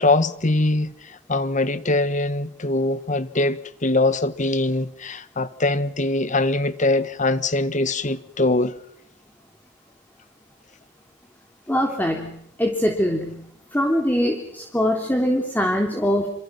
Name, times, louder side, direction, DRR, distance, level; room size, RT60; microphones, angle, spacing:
voice 1, 0.0-8.7, left 2 dB, 40° left, 1.6 m, -22 dB
voice 2, 11.7-13.4 13.7-16.3, equal, 10° left, 3.4 m, -22 dB
28.5 x 28.5 x 6.1 m
head